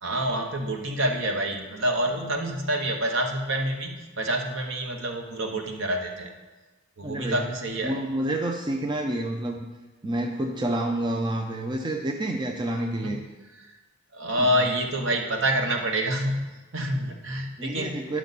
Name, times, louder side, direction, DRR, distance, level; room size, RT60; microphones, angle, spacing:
voice 1, 0.0-6.3 7.0-7.9 13.0-13.1 14.1-16.5 16.7-17.9, right 1 dB, 60° right, 2 dB, 1.1 m, -27 dB
voice 2, 7.0-7.5 7.8-9.7 10.0-13.2 14.4-14.7 17.6-18.2, right 1 dB, 20° right, 3 dB, 0.5 m, -29 dB
10.5 x 6.1 x 4.1 m, 1.2 s
head